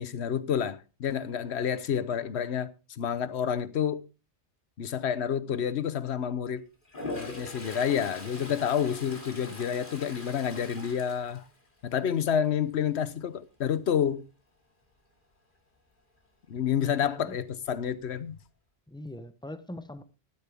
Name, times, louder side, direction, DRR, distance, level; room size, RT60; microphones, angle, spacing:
voice 1, 0.0-4.1 4.8-6.7 7.2-11.4 11.8-14.3 16.5-18.4, left 8 dB, 80° left, 1.1 m, -29 dB
Toilet flush, 6.8-12.0 12.4-12.8 17.3-17.4 17.7-18.4, left 2 dB, 50° left, 2.7 m, -42 dB
voice 2, 16.8-17.4 18.9-20.0, left 1 dB, 5° left, 0.9 m, -42 dB
15.0 x 12.5 x 3.5 m
omnidirectional pair, 1.1 m